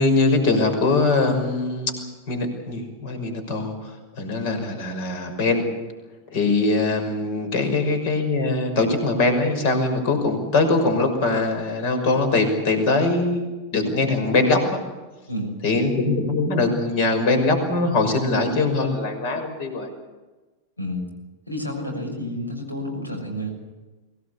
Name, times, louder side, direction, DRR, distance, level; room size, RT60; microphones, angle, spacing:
voice 1, 0.0-3.9 4.2-5.7 6.3-14.8 15.6-19.9, left 3 dB, 50° left, 7 dB, 6.0 m, -22 dB
voice 2, 15.3-15.6 20.8-21.1 21.5-23.5, equal, 85° left, 3 dB, 6.7 m, -30 dB
24.0 x 18.0 x 8.5 m, 1.2 s
figure-of-eight pair, 90°, 0 cm